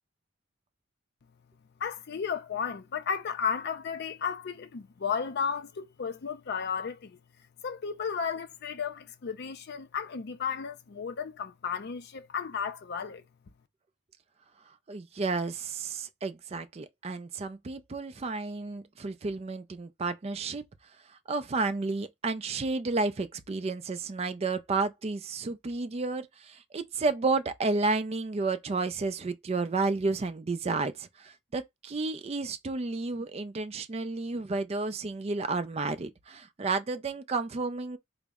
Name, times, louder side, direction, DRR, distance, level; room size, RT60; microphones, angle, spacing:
voice 1, 1.8-7.2 7.6-13.2, left 6 dB, 50° left, 0.4 m, -34 dB
voice 2, 14.9-20.6 21.3-38.0, right 3 dB, 30° right, 0.4 m, -31 dB
3.9 x 2.0 x 3.4 m
head